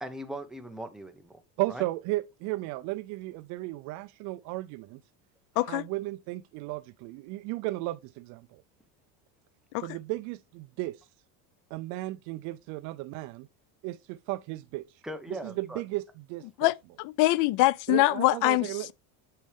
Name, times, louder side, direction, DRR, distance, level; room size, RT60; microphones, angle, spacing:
voice 1, 0.0-1.4 1.7-1.8 15.0-15.8, right 1 dB, ahead, 1.0 m, -39 dB
voice 2, 1.6-5.0 5.6-8.6 9.8-11.1 11.7-13.5 13.8-15.0 15.3-16.7 17.9-18.9, right 19 dB, 45° right, 0.4 m, -35 dB
voice 3, 16.6-18.9, left 18 dB, 50° left, 0.5 m, -24 dB
8.5 x 6.4 x 3.5 m
cardioid pair, 160°, 41 cm